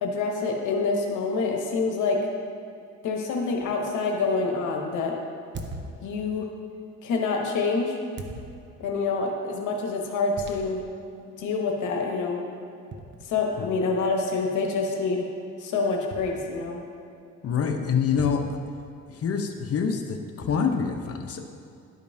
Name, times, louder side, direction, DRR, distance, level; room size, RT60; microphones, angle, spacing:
voice 1, 0.0-2.2 3.0-5.1 6.0-6.5 7.0-8.0 8.8-10.8 11.4-12.4 13.3-15.3 15.6-16.8, left 4 dB, 80° left, 1 dB, 1.0 m, -26 dB
sound 1, 3.6-3.8 5.5-6.6 8.2-9.0 10.4-11.0 11.5-11.6 12.9-13.8 16.1-16.9 18.2-19.3, right 2 dB, 40° right, 0.8 m, -41 dB
voice 2, 17.4-18.6 19.1-21.4, left 6 dB, 50° left, 4 dB, 0.8 m, -26 dB
11.5 x 5.2 x 2.7 m, 2.6 s
cardioid pair, 90°, 30 cm